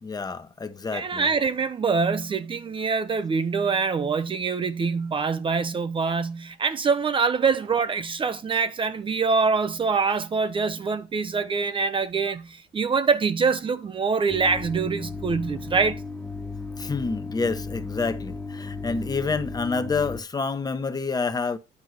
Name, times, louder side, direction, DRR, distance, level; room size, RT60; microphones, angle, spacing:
voice 1, 0.0-1.3 16.8-21.6, left 4 dB, 25° left, 0.9 m, -28 dB
voice 2, 0.9-16.0, right 5 dB, 30° right, 0.7 m, -24 dB
sound 1, 14.3-20.2, left 3 dB, 5° left, 1.2 m, -35 dB
9.6 x 4.6 x 6.4 m
cardioid pair, 110°, 17 cm